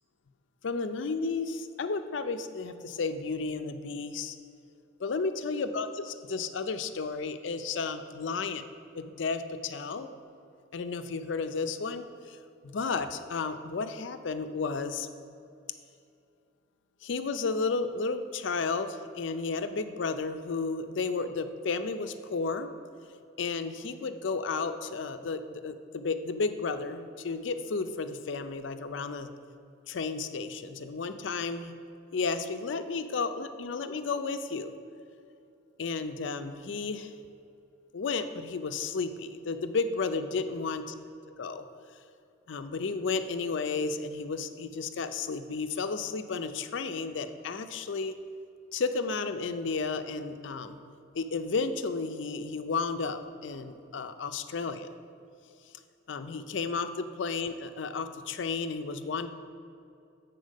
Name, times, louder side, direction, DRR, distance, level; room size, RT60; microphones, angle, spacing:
voice 1, 0.6-4.4 5.0-8.6 9.0-10.1 10.7-12.4 12.6-15.1 17.0-22.7 23.4-29.3 29.9-31.7 32.1-34.7 35.8-37.1 37.9-40.9 41.4-41.7 42.5-48.1 48.7-50.8 51.1-54.9 56.1-59.3, left 4 dB, 65° left, 9 dB, 0.5 m, -33 dB
8.1 x 4.2 x 6.3 m, 2.5 s
head